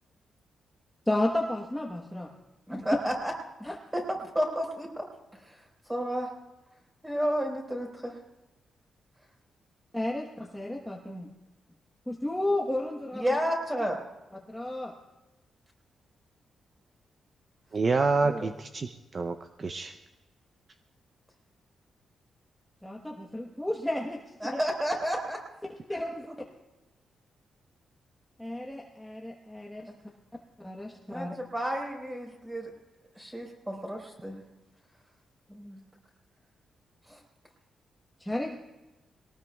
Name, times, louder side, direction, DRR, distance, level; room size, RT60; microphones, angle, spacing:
voice 1, 1.1-2.3 2.7-2.8 3.6-3.7 9.9-11.3 12.1-13.2 14.5-14.9 22.8-24.2 24.5-24.6 25.9-26.3 28.4-29.9 30.6-31.3 38.2-38.6, left 1 dB, 5° left, 0 dB, 1.2 m, -32 dB
voice 2, 2.7-3.3 3.6-5.1 5.3-5.6 5.9-6.3 7.0-8.2 13.2-14.0 18.2-18.5 24.4-25.4 26.3-26.4 29.9-30.0 31.1-32.7 33.1-34.4 35.5-35.8 37.1-37.2, equal, 10° right, 0 dB, 4.4 m, -31 dB
voice 3, 17.7-20.0, right 4 dB, 40° right, 8 dB, 0.6 m, -28 dB
22.0 x 18.5 x 2.3 m, 1.0 s
cardioid pair, 125°, 0 cm